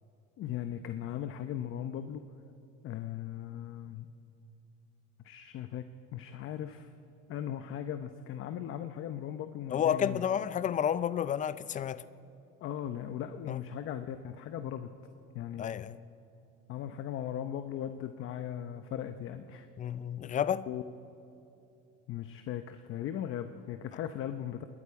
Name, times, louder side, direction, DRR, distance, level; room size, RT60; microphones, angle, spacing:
voice 1, 0.4-2.2 2.8-4.1 5.2-5.8 6.1-6.9 7.3-10.3 12.6-14.9 15.3-15.8 16.7-19.7 20.7-20.8 22.1-24.6, left 10 dB, 45° left, 0.8 m, -38 dB
voice 2, 9.7-12.0 13.5-13.6 15.6-16.0 19.8-20.7, left 9 dB, 25° left, 0.4 m, -31 dB
27.5 x 21.0 x 4.8 m
cardioid pair, 140°, 29 cm